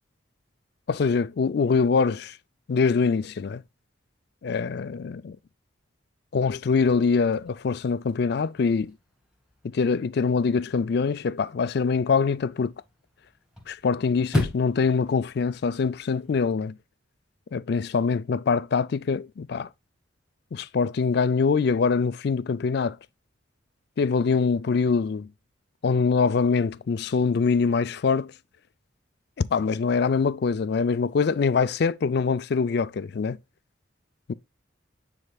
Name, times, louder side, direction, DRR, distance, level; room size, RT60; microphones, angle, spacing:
voice 1, 0.9-2.4 2.7-3.6 4.4-5.4 6.3-8.9 9.6-12.7 13.7-16.7 17.5-19.7 20.5-23.0 24.0-25.3 25.8-28.3 29.4-33.4 34.3-34.4, left 5 dB, 55° left, 0.4 m, -24 dB
Chirp tweet / Car / Slam, 6.5-16.5, left 1 dB, 5° right, 2.1 m, -38 dB
9.7 x 4.5 x 2.3 m
head